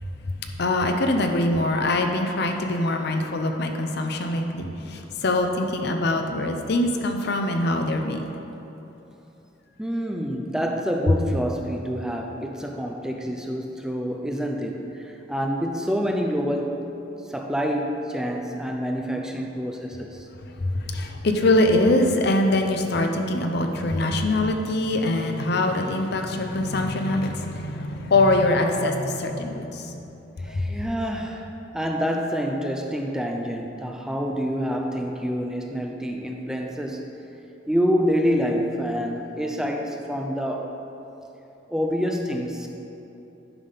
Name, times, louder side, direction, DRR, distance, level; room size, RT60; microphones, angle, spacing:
voice 1, 0.3-8.4 20.6-30.0 30.4-30.6, left 2 dB, 60° left, 4 dB, 0.6 m, -23 dB
voice 2, 9.8-16.8 17.3-20.3 30.4-37.0 37.7-40.8 41.7-42.7, equal, 5° right, 2 dB, 0.4 m, -27 dB
9.9 x 3.6 x 5.6 m, 3.0 s
head